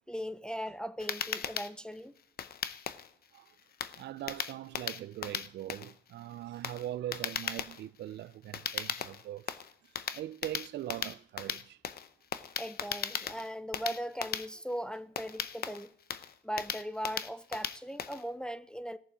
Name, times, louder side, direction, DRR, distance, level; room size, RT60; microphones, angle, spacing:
voice 1, 0.1-2.1 12.6-15.9 16.4-19.0, equal, 5° left, 0.5 m, -39 dB
sound 1, 1.0-18.3, left 8 dB, 50° left, 0.7 m, -38 dB
voice 2, 4.0-9.6 10.1-11.8, right 13 dB, 60° right, 0.4 m, -41 dB
16.5 x 7.0 x 4.9 m
cardioid pair, 90°, 20 cm